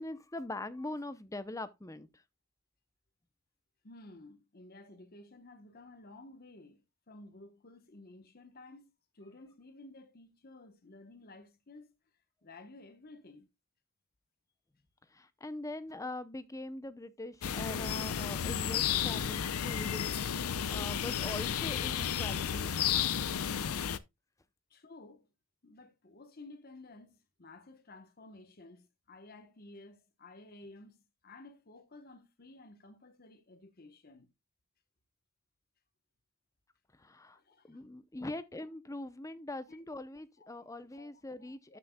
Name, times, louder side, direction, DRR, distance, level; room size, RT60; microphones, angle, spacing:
voice 1, 0.0-2.2 15.1-22.7 36.9-37.4 37.7-41.8, left 2 dB, 15° left, 0.6 m, -42 dB
voice 2, 3.8-11.9 12.4-13.5 24.7-25.3 25.6-31.0 31.2-34.3 37.3-37.8 38.1-38.2 39.7-39.8 40.4-40.7 40.9-41.8, left 2 dB, 45° left, 1.1 m, -54 dB
sound 1, 17.4-24.0, left 8 dB, 85° left, 0.6 m, -32 dB
13.0 x 6.2 x 2.2 m
head